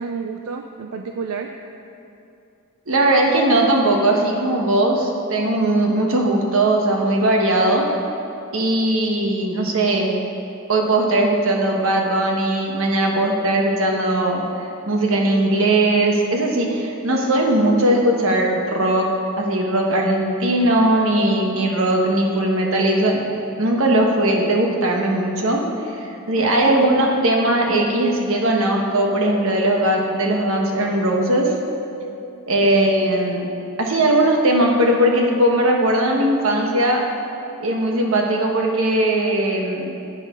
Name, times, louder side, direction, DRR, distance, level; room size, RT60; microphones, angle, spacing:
voice 1, 0.0-1.5 26.4-26.7 32.6-32.9, right 5 dB, 85° right, 4 dB, 0.5 m, -30 dB
voice 2, 2.9-7.9 8.5-10.1 10.7-14.4 14.9-19.1 19.4-23.2 23.6-25.6 25.9-31.5 32.5-33.5 33.8-37.0 37.6-40.0, right 1 dB, 65° right, 0 dB, 1.3 m, -19 dB
10.5 x 9.2 x 3.7 m, 2.7 s
head